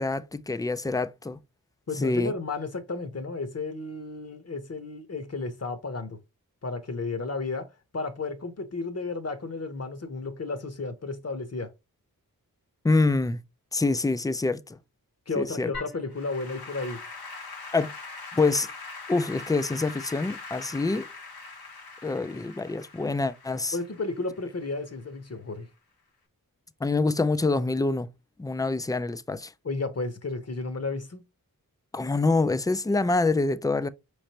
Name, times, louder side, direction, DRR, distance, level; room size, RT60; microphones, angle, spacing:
voice 1, 0.0-1.4 2.0-2.3 12.8-13.4 13.7-14.8 15.4-15.7 17.7-17.9 18.3-18.7 19.1-21.1 22.0-23.8 26.8-28.1 28.4-29.5 31.9-33.9, left 3 dB, 10° left, 0.3 m, -26 dB
voice 2, 1.9-6.2 6.6-7.7 7.9-11.7 15.3-17.0 23.7-25.7 29.6-31.2, left 3 dB, 45° left, 0.9 m, -33 dB
Applause / Keyboard (musical), 15.7-25.1, left 3 dB, 85° left, 1.3 m, -42 dB
4.9 x 3.3 x 2.8 m
wide cardioid pair, 80°, 36 cm